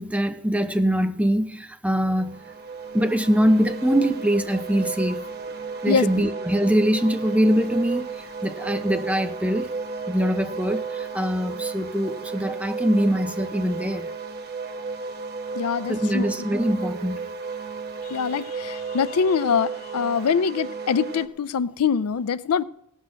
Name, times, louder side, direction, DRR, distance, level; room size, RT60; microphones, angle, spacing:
voice 1, 0.0-2.4 2.9-5.2 5.8-9.7 10.1-14.1 15.9-17.3, equal, 5° right, 0.7 m, -23 dB
sound 1, 2.0-21.3, right 4 dB, 50° right, 1.1 m, -33 dB
voice 2, 5.9-6.3 15.5-16.3 18.0-22.6, left 6 dB, 90° left, 0.4 m, -24 dB
18.0 x 6.4 x 6.3 m
head